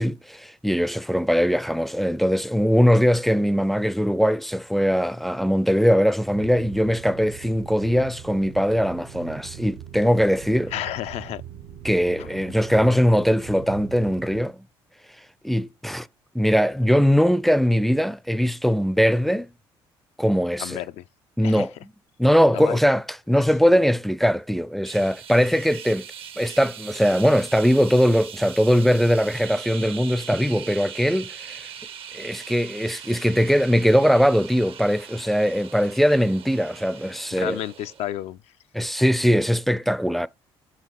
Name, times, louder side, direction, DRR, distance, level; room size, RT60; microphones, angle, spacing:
voice 1, 0.0-10.7 11.8-14.6 15.4-16.1 16.3-19.5 20.2-20.8 21.4-21.7 22.2-26.1 26.4-31.7 32.1-37.6 38.7-40.3, equal, ahead, 0.4 m, -21 dB
sound 1, 6.3-14.4, right 10 dB, 85° right, 1.0 m, -41 dB
voice 2, 10.7-11.4 12.2-12.3 20.6-21.0 21.4-21.7 22.5-22.8 37.3-38.4, left 12 dB, 70° left, 0.4 m, -31 dB
sound 2, 24.9-38.2, right 8 dB, 55° right, 0.6 m, -41 dB
6.0 x 5.2 x 4.6 m
supercardioid pair, 70°, 11 cm